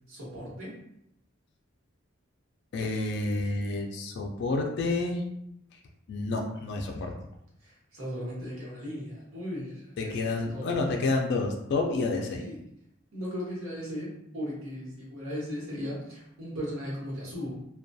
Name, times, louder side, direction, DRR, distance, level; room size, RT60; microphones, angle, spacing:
voice 1, 0.1-0.7 7.6-10.7 12.3-12.6 13.1-17.6, equal, 90° right, -5 dB, 1.0 m, -37 dB
voice 2, 2.7-5.2 6.1-7.1 10.0-12.4, left 3 dB, 55° left, 1 dB, 0.3 m, -29 dB
2.6 x 2.2 x 2.2 m, 0.78 s
head